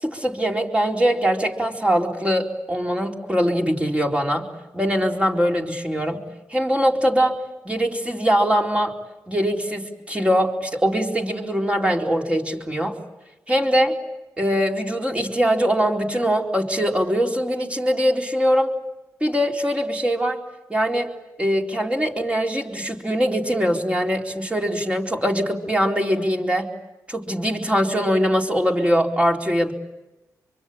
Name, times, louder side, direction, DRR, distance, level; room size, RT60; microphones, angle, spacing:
voice 1, 0.0-4.5 4.7-6.2 6.5-7.4 7.6-8.9 9.3-13.0 13.5-14.0 14.4-18.7 19.2-20.4 20.7-21.1 21.4-26.7 27.1-29.7, equal, 15° right, 0 dB, 4.2 m, -22 dB
25.0 x 24.0 x 8.8 m, 1.0 s
cardioid pair, 55°, 7 cm